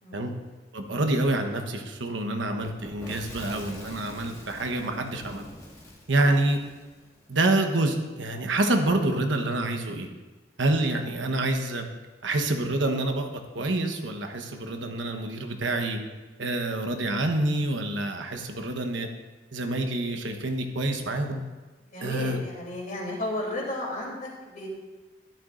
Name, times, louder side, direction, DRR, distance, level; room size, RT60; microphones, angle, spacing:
voice 1, 0.0-0.3 6.1-6.2 21.9-24.7, left 1 dB, 45° left, -2 dB, 3.2 m, -34 dB
voice 2, 0.7-5.4 6.1-6.6 7.3-10.1 10.6-11.9 12.2-16.0 16.4-19.1 19.5-21.4 22.0-22.4, right 2 dB, 75° right, 5 dB, 1.1 m, -27 dB
Fire / Explosion, 2.6-7.4, left 1 dB, 20° left, 1.7 m, -45 dB
13.5 x 12.0 x 2.6 m, 1.2 s
head